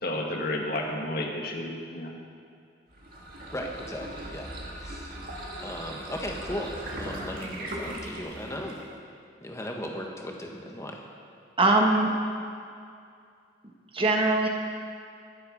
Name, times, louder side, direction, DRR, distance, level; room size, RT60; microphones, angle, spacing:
voice 1, 0.0-2.1, left 1 dB, 55° left, 0 dB, 1.9 m, -31 dB
sound 1, 2.9-8.9, right 1 dB, 50° right, 2.1 m, -39 dB
voice 2, 3.5-5.1 5.6-8.8 9.4-11.0, equal, 15° left, 0 dB, 1.5 m, -37 dB
voice 3, 11.6-12.1 13.9-14.5, right 2 dB, 30° right, 1 dB, 1.4 m, -21 dB
22.0 x 7.9 x 5.4 m, 2.4 s
head